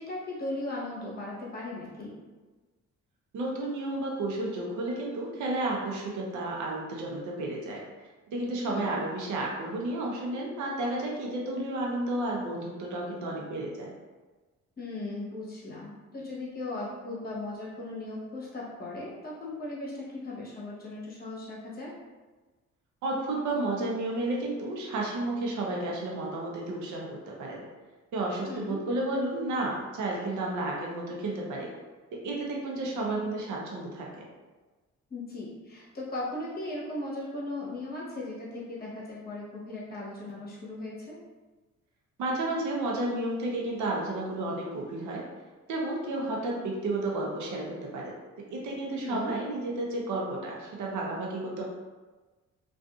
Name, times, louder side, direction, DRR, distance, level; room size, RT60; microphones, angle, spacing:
voice 1, 0.0-2.2 8.7-8.9 14.8-22.0 28.5-28.8 35.1-41.2 49.0-49.3, left 2 dB, 30° left, -6 dB, 1.0 m, -37 dB
voice 2, 3.3-7.8 8.3-13.9 23.0-27.6 28.1-31.7 32.1-34.1 42.2-45.2 45.7-51.6, right 2 dB, 75° right, -2 dB, 0.7 m, -32 dB
2.5 x 2.4 x 2.4 m, 1.3 s
cardioid pair, 90°, 30 cm